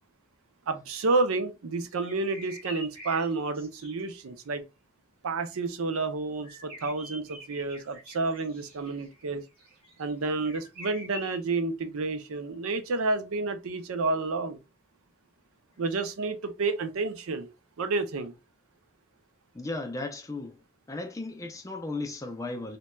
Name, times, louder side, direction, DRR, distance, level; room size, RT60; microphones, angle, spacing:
voice 1, 0.7-4.6 5.2-9.4 10.0-14.6 15.8-17.5 17.8-18.3, right 3 dB, 80° right, 0.5 m, -30 dB
sound 1, 1.8-4.0 6.4-11.4, equal, 25° right, 1.8 m, -45 dB
voice 2, 19.5-20.6 20.9-22.8, left 2 dB, 15° left, 0.4 m, -35 dB
4.0 x 2.2 x 2.2 m
head